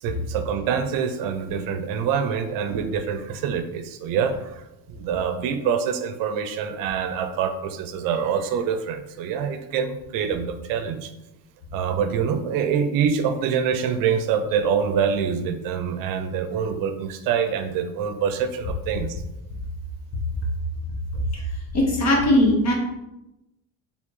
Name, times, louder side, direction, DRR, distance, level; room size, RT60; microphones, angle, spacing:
voice 1, 0.0-11.1 11.7-19.2, right 7 dB, 65° right, 8 dB, 0.6 m, -25 dB
voice 2, 21.7-22.7, left 1 dB, 45° left, -1 dB, 1.4 m, -19 dB
4.3 x 3.4 x 3.1 m, 0.93 s
cardioid pair, 135°, 37 cm